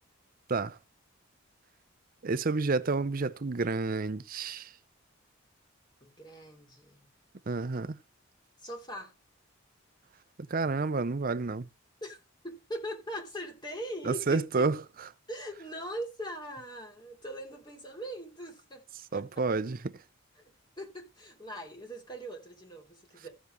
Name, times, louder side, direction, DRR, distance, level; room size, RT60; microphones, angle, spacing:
voice 1, 2.2-4.7 7.5-8.0 10.5-11.7 14.0-14.8 19.1-20.0, right 3 dB, 45° right, 0.6 m, -29 dB
voice 2, 6.0-7.1 8.6-9.1 12.0-14.7 15.3-18.8 19.1-19.4 20.3-23.3, equal, 20° left, 3.0 m, -41 dB
14.5 x 7.3 x 3.3 m
head